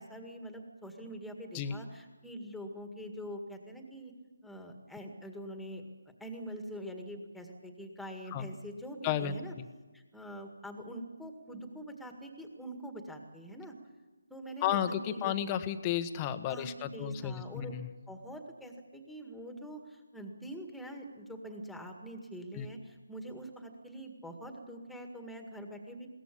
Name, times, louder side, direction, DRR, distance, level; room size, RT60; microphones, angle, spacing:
voice 1, 0.0-4.1 4.4-5.8 6.2-9.6 9.9-13.8 14.3-15.3 16.5-17.8 18.1-26.1, equal, ahead, 4 dB, 1.9 m, -44 dB
voice 2, 14.6-17.8 22.6-22.7, left 10 dB, 20° left, 10 dB, 1.1 m, -32 dB
21.5 x 17.5 x 8.4 m, 1.2 s
figure-of-eight pair, 160°, 0 cm